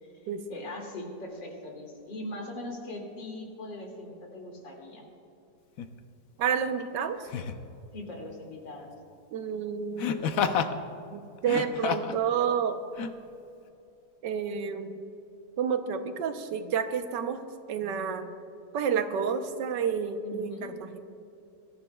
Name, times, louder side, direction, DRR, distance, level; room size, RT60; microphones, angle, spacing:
voice 1, 0.0-5.0 7.9-8.9 20.2-20.7, left 1 dB, 85° left, -1 dB, 3.1 m, -41 dB
Laughter, 5.8-5.9 7.3-7.7 10.0-10.7 11.4-12.2 13.0-13.1, left 7 dB, 65° left, 1.0 m, -29 dB
voice 2, 6.4-7.2 9.3-10.2 11.1-12.8 14.2-15.0 15.6-17.4 17.7-18.3 18.7-21.0, right 7 dB, 80° right, 7 dB, 1.5 m, -30 dB
24.0 x 14.0 x 2.3 m, 2.6 s
omnidirectional pair, 1.9 m